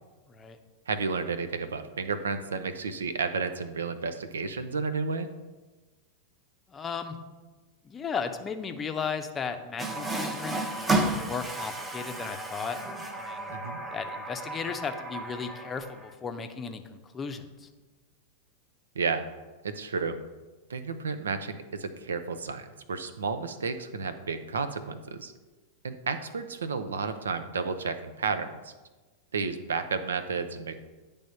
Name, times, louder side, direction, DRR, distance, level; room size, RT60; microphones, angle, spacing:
voice 1, 0.9-5.3 13.5-13.8 18.9-19.2 19.6-20.2 20.7-25.3 25.8-28.7 29.3-30.8, right 4 dB, 70° right, 10 dB, 0.5 m, -32 dB
voice 2, 6.7-7.2 7.8-12.8 13.2-13.5 13.9-17.7, left 5 dB, 20° left, 7 dB, 0.7 m, -35 dB
Water tap faucet, 9.8-16.1, right 2 dB, 15° right, 0.8 m, -32 dB
10.0 x 3.4 x 5.5 m, 1.2 s
figure-of-eight pair, 90°, 0 cm